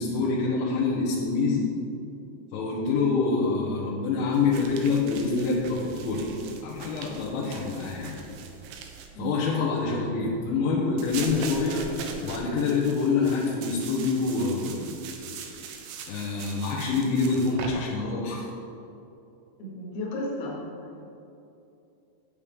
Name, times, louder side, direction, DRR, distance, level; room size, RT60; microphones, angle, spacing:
voice 1, 0.0-1.7 2.5-6.2 6.6-8.4 9.2-11.9 12.2-14.9 16.1-18.5, left 4 dB, 85° left, -7 dB, 3.4 m, -26 dB
sound 1, 4.3-9.1 11.0-17.7, right 6 dB, 80° right, 2.7 m, -41 dB
voice 2, 19.6-20.7, left 1 dB, 65° left, -5 dB, 3.4 m, -33 dB
8.9 x 8.5 x 3.4 m, 2.8 s
omnidirectional pair, 5.3 m